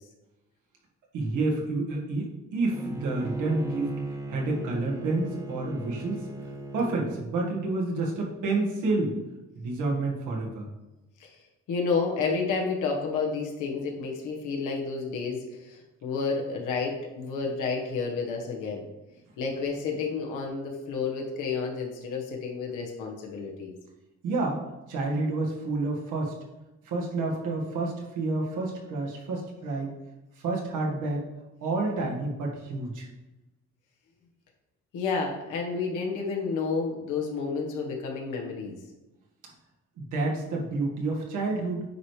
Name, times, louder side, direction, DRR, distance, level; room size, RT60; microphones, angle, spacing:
voice 1, 1.1-3.9 4.3-6.3 6.7-9.2 9.5-10.7 24.2-24.6 24.9-26.3 26.8-29.9 30.4-31.2 31.6-33.1 40.0-41.8, right 2 dB, 85° right, -2 dB, 1.7 m, -29 dB
Bowed string instrument, 2.7-7.3, right 2 dB, 10° right, 0.7 m, -37 dB
voice 2, 11.7-18.9 19.4-23.7 34.9-38.8, left 4 dB, 85° left, -1 dB, 1.3 m, -30 dB
9.1 x 3.2 x 4.9 m, 1.0 s
cardioid pair, 90°, 30 cm